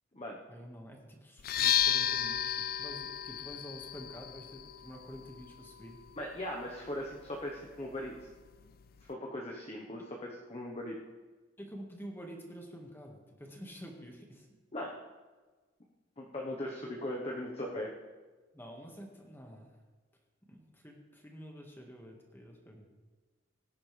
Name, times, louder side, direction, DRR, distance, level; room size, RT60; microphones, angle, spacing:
voice 1, 0.5-6.0 11.6-14.5 18.5-19.7 20.4-22.8, equal, 10° left, 1 dB, 1.7 m, -48 dB
sound 1, 1.4-9.1, left 10 dB, 50° left, 0.4 m, -35 dB
voice 2, 6.2-8.1 9.0-11.0 14.7-15.0 16.2-17.9, left 1 dB, 30° left, -2 dB, 1.1 m, -39 dB
19.0 x 10.0 x 3.4 m, 1.3 s
head